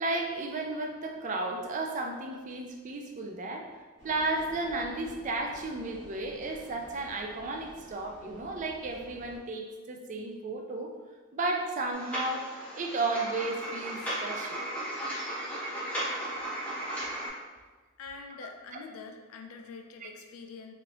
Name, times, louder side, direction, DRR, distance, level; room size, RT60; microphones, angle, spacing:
voice 1, 0.0-3.7 4.0-10.9 11.3-14.6 20.0-20.1, right 2 dB, 35° right, 2 dB, 0.3 m, -33 dB
sound 1, 4.0-9.4, equal, 55° right, 1.1 m, -50 dB
sound 2, 11.9-17.3, right 1 dB, 5° left, 0.7 m, -35 dB
voice 2, 18.0-20.7, left 4 dB, 70° left, 4 dB, 0.4 m, -45 dB
3.1 x 2.6 x 2.9 m, 1.3 s
head